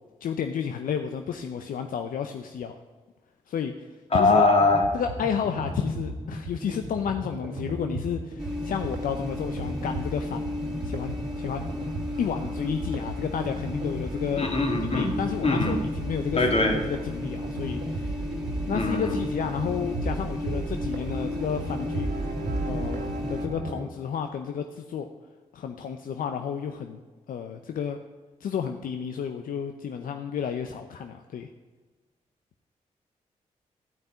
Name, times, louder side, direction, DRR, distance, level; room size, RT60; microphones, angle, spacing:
voice 1, 0.2-2.8 3.5-3.9 4.1-4.5 4.9-11.6 12.2-14.5 14.8-18.3 18.7-22.1 22.7-25.1 25.5-27.0 27.3-28.0 28.4-31.5, left 7 dB, 80° left, 6 dB, 0.7 m, -31 dB
voice 2, 4.1-4.8 14.4-15.1 15.4-15.8 16.4-16.8 18.7-19.2, left 2 dB, 45° left, 2 dB, 2.6 m, -22 dB
sound 1, 4.3-23.8, right 1 dB, 90° right, 2.1 m, -35 dB
sound 2, 8.4-23.5, left 1 dB, 5° right, 2.5 m, -35 dB
13.5 x 5.4 x 9.0 m, 1.3 s
supercardioid pair, 50°, 14 cm